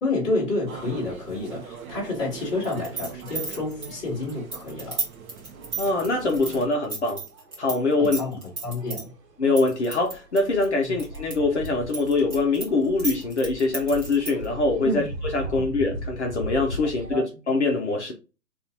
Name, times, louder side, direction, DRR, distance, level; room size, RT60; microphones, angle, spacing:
voice 1, 0.0-5.0 8.0-8.4 8.6-9.1 10.8-11.0 14.8-15.1 15.4-15.7 17.1-17.2, left 2 dB, 10° left, 0.9 m, -29 dB
sound 1, 0.7-6.7, right 6 dB, 60° right, 0.6 m, -42 dB
sound 2, 2.6-7.8 8.0-9.0 9.6-11.3 11.7-14.5, right 4 dB, 15° right, 0.9 m, -33 dB
sound 3, 5.5-17.2, right 1 dB, 75° right, 1.0 m, -39 dB
voice 2, 5.8-7.2 7.6-8.2 9.4-18.1, left 3 dB, 45° left, 0.6 m, -24 dB
3.8 x 2.4 x 2.8 m
figure-of-eight pair, 140°, 49 cm